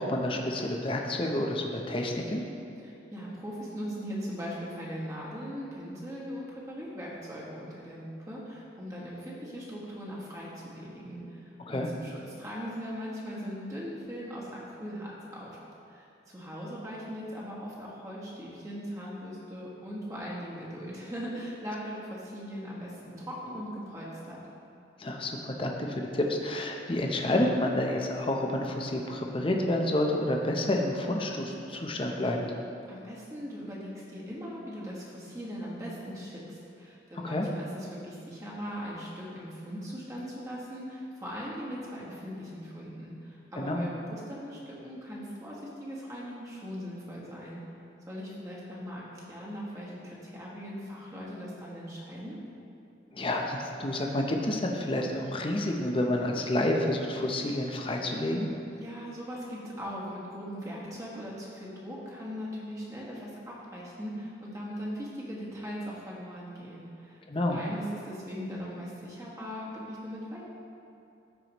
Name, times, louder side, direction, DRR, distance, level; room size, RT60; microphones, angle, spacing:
voice 1, 0.0-2.4 11.7-11.9 25.0-32.4 37.2-37.5 43.6-43.9 53.1-58.5 67.3-67.6, left 1 dB, 30° left, 1 dB, 0.7 m, -29 dB
voice 2, 2.8-15.6 15.9-24.4 32.9-47.6 48.1-52.4 58.8-70.4, equal, 20° right, -6 dB, 1.5 m, -40 dB
14.0 x 4.8 x 3.0 m, 2.6 s
head